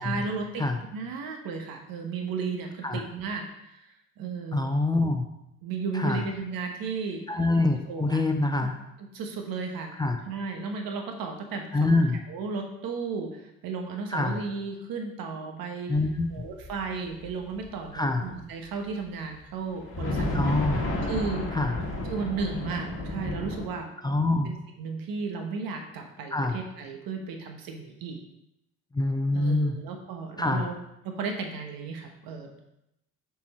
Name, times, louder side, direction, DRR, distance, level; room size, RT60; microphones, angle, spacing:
voice 1, 0.0-0.6 0.9-4.7 5.6-7.2 7.9-8.2 8.6-8.7 9.1-9.9 10.3-12.0 12.3-15.9 16.3-20.5 21.0-21.5 22.1-23.9 24.4-28.2 29.3-30.7 31.0-32.6, right 4 dB, 60° right, 3 dB, 1.5 m, -34 dB
voice 2, 4.5-5.2 5.9-6.2 7.3-8.8 9.9-10.2 11.7-12.2 14.1-14.4 15.9-16.3 17.9-18.2 20.3-20.8 21.5-21.8 24.0-24.5 26.3-26.6 28.9-29.7 30.4-30.7, left 2 dB, 10° left, 5 dB, 0.7 m, -25 dB
sound 1, 15.9-18.7 19.0-19.1 19.7-23.7, left 1 dB, 30° left, 2.0 m, -32 dB
6.9 x 4.6 x 4.4 m, 0.85 s
supercardioid pair, 75°, 39 cm